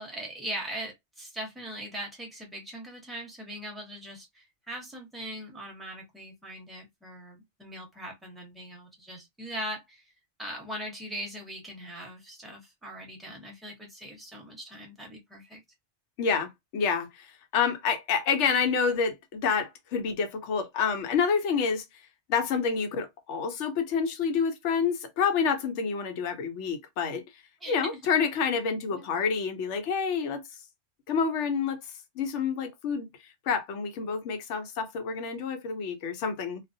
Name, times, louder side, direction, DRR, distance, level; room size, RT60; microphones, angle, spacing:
voice 1, 0.0-10.0 10.4-15.6 27.6-28.0 28.9-29.1, right 1 dB, ahead, 0.8 m, -40 dB
voice 2, 16.2-17.3 17.5-21.8 22.3-27.2 27.7-30.4 31.1-31.8 32.2-33.1 33.5-36.6, left 6 dB, 80° left, 0.9 m, -28 dB
2.3 x 2.1 x 2.6 m
omnidirectional pair, 1.2 m